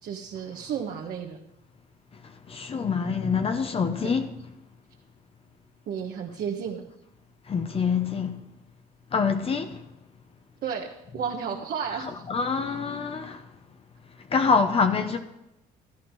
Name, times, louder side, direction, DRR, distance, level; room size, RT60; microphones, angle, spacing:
voice 1, 0.0-1.4 4.0-4.1 5.9-6.8 10.6-12.1 15.0-15.2, right 7 dB, 65° right, 1.4 m, -32 dB
voice 2, 2.5-4.3 7.5-8.4 9.1-9.8 12.3-13.4 14.3-15.2, left 5 dB, 35° left, 0.9 m, -25 dB
13.5 x 9.5 x 4.7 m
cardioid pair, 110°, 17 cm